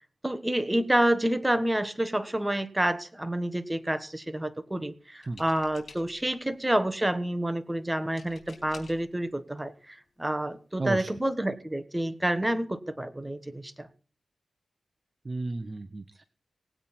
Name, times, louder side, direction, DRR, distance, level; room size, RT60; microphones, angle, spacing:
voice 1, 0.2-13.9, right 1 dB, 15° right, 11 dB, 1.3 m, -28 dB
sound 1, 5.2-6.4 8.2-9.1 10.1-10.2 10.5-10.8, left 4 dB, 65° left, 3.9 m, -51 dB
voice 2, 10.8-11.1 15.2-16.2, right 2 dB, 40° right, 11 dB, 0.8 m, -33 dB
18.5 x 8.8 x 4.2 m, 0.40 s
cardioid pair, 70°, 0 cm